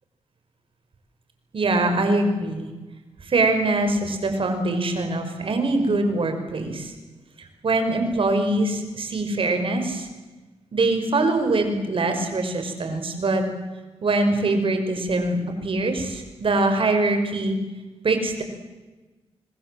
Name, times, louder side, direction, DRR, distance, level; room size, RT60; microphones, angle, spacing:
voice 1, 1.5-2.7 3.2-6.9 7.6-10.1 10.7-13.4 14.0-17.6 18.0-18.4, right 2 dB, 55° right, 6 dB, 5.6 m, -23 dB
26.0 x 19.5 x 7.8 m, 1.2 s
cardioid pair, 70°, 11 cm